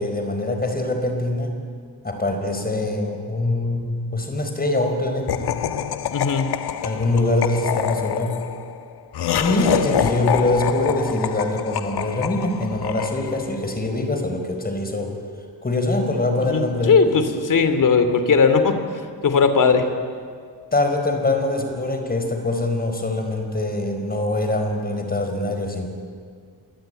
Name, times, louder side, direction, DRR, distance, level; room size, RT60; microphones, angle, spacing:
voice 1, 0.0-1.6 2.0-5.5 6.8-8.4 9.4-15.2 15.6-17.1 20.7-25.9, left 2 dB, 20° left, 5 dB, 4.7 m, -23 dB
Laughter, 5.3-13.7, left 9 dB, 70° left, 1.4 m, -26 dB
voice 2, 6.1-6.5 16.4-18.8 19.2-19.9, left 5 dB, 50° left, 9 dB, 2.8 m, -18 dB
27.5 x 22.5 x 9.1 m, 2.1 s
wide cardioid pair, 130°, 40 cm